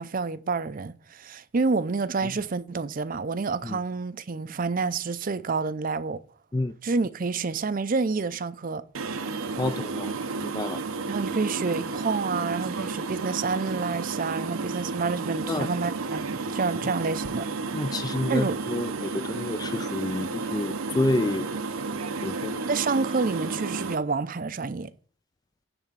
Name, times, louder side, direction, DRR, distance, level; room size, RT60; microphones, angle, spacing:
voice 1, 0.0-6.2 6.8-8.8 11.1-17.5 18.3-18.6 22.7-24.9, right 4 dB, 40° right, 0.5 m, -28 dB
sound 1, 9.0-24.0, right 4 dB, 85° right, 0.8 m, -32 dB
voice 2, 9.6-10.1 10.4-10.8 15.5-15.7 17.7-21.5 22.2-22.6, left 2 dB, 20° left, 0.3 m, -29 dB
10.5 x 3.5 x 7.3 m
head